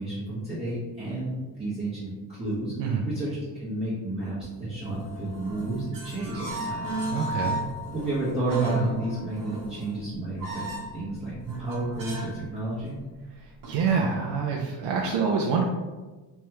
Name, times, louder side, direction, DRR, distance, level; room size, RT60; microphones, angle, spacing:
voice 1, 0.0-2.7 3.0-6.9 7.9-10.7 10.9-13.0, right 2 dB, 15° right, -12 dB, 1.3 m, -31 dB
voice 2, 2.8-3.1 7.1-7.6 13.3-15.6, right 5 dB, 70° right, -1 dB, 0.6 m, -26 dB
sound 1, 4.8-12.5 12.7-12.9 13.6-14.1, right 2 dB, 50° right, 1.2 m, -34 dB
3.4 x 3.2 x 3.0 m, 1.2 s
cardioid pair, 110°, 42 cm